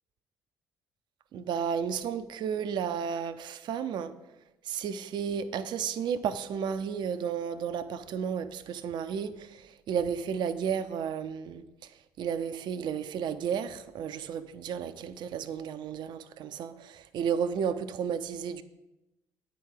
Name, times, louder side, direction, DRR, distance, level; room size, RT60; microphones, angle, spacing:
voice 1, 1.3-4.1 4.6-18.6, right 7 dB, 55° right, 0.6 m, -33 dB
9.1 x 4.9 x 7.5 m
figure-of-eight pair, 50°, 9 cm